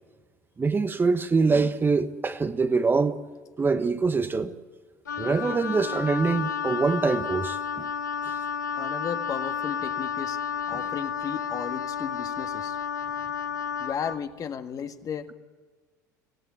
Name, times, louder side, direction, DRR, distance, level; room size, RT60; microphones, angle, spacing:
voice 1, 0.6-3.2 3.6-4.5 5.2-7.9, right 4 dB, 20° right, 1.2 m, -24 dB
Wind instrument woodwind instrument, 5.1-14.2, left 7 dB, 85° left, 0.8 m, -31 dB
voice 2, 8.8-10.4 10.7-12.8 13.8-15.3, left 7 dB, 40° left, 1.7 m, -34 dB
25.0 x 17.0 x 9.3 m
hypercardioid pair, 70°, 10 cm